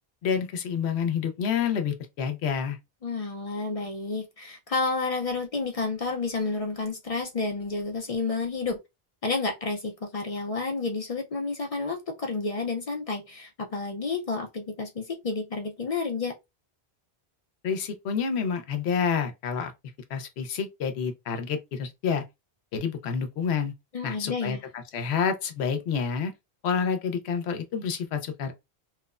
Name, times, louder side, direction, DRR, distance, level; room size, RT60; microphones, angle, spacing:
voice 1, 0.2-2.8 17.6-19.7 20.1-22.2 22.7-23.7 24.0-26.3 26.6-28.5, left 6 dB, 90° left, 0.9 m, -28 dB
voice 2, 3.0-8.8 9.2-16.4 23.9-24.6, left 3 dB, 50° left, 0.5 m, -30 dB
3.0 x 2.0 x 2.3 m
omnidirectional pair, 1.1 m